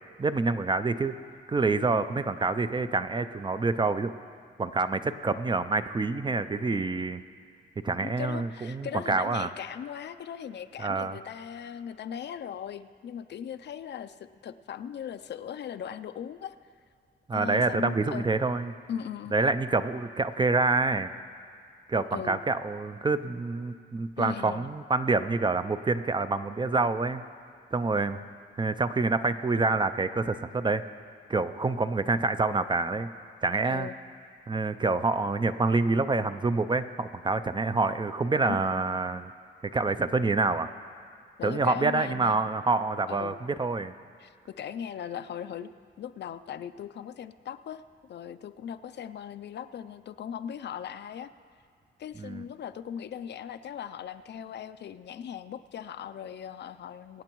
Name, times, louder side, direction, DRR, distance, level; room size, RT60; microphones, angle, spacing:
voice 1, 0.2-1.2 1.5-4.1 4.6-7.2 7.8-9.5 10.8-11.2 17.3-18.7 19.3-21.1 21.9-27.2 27.7-28.2 28.6-30.8 31.3-33.1 33.4-33.9 34.5-39.3 39.6-40.7 41.4-43.9 52.2-52.4, right 3 dB, 25° right, 11 dB, 0.4 m, -27 dB
voice 2, 8.0-14.2 14.4-16.6 17.3-18.3 18.9-19.3 22.1-22.4 24.2-24.7 29.6-29.7 33.6-33.9 38.5-38.8 41.4-42.5 43.1-43.4 44.2-45.7 46.0-47.8 48.1-51.3 52.0-57.2, left 8 dB, 60° left, 12 dB, 0.4 m, -38 dB
24.5 x 8.7 x 3.0 m, 2.2 s
cardioid pair, 100°, 20 cm